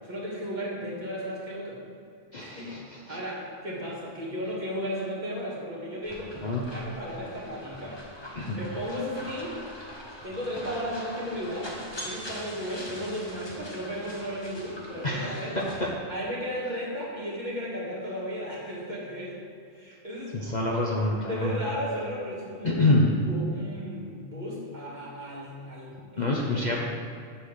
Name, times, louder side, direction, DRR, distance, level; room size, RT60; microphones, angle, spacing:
voice 1, 0.0-1.8 2.4-8.0 8.5-9.6 10.2-15.7 16.1-19.4 19.7-20.4 21.3-23.0 23.2-26.8, equal, 35° right, -6 dB, 2.0 m, -35 dB
voice 2, 2.3-2.8 3.1-3.2 6.4-6.6 8.3-8.6 15.0-15.4 20.3-21.5 22.6-23.1 26.2-26.8, left 2 dB, 40° left, -3 dB, 0.9 m, -26 dB
sound 1, 6.0-15.9, equal, 20° left, 1.2 m, -42 dB
7.2 x 5.6 x 6.5 m, 2.4 s
omnidirectional pair, 1.3 m